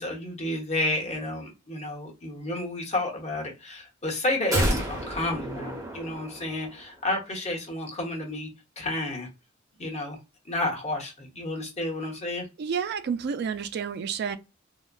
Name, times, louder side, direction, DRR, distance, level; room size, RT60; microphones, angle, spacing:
voice 1, 0.0-8.5 8.8-9.3 9.8-10.2 10.4-12.5, left 1 dB, 35° left, 1.0 m, -31 dB
sound 1, 4.5-6.9 7.2-7.3, right 1 dB, 15° right, 0.9 m, -30 dB
voice 2, 12.6-14.4, right 6 dB, 50° right, 0.3 m, -30 dB
3.8 x 2.1 x 2.2 m
head